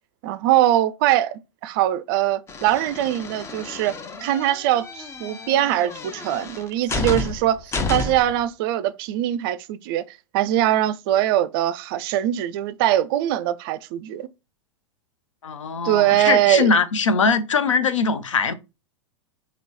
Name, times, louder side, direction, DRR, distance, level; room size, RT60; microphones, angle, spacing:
voice 1, 0.2-4.0 4.2-10.0 10.3-14.3 15.8-16.7, right 13 dB, 45° right, 0.4 m, -22 dB
sound 1, 2.5-8.4, left 3 dB, 15° left, 0.5 m, -31 dB
voice 2, 15.4-18.5, left 5 dB, 80° left, 0.6 m, -21 dB
3.0 x 2.8 x 4.0 m
hypercardioid pair, 100°, 16 cm